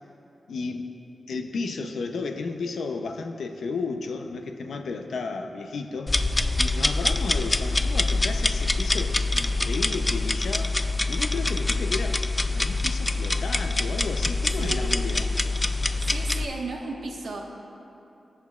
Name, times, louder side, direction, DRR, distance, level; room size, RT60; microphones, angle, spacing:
voice 1, 0.5-0.9 1.3-6.2 6.6-10.7 11.1-12.2 12.5-15.2, left 4 dB, 90° left, 5 dB, 0.6 m, -33 dB
sound 1, 6.1-16.5, left 2 dB, 20° left, 0.3 m, -25 dB
voice 2, 14.6-14.9 16.0-17.4, right 3 dB, 80° right, -1 dB, 1.2 m, -34 dB
18.5 x 6.4 x 2.4 m, 2.9 s
wide cardioid pair, 120°, 0 cm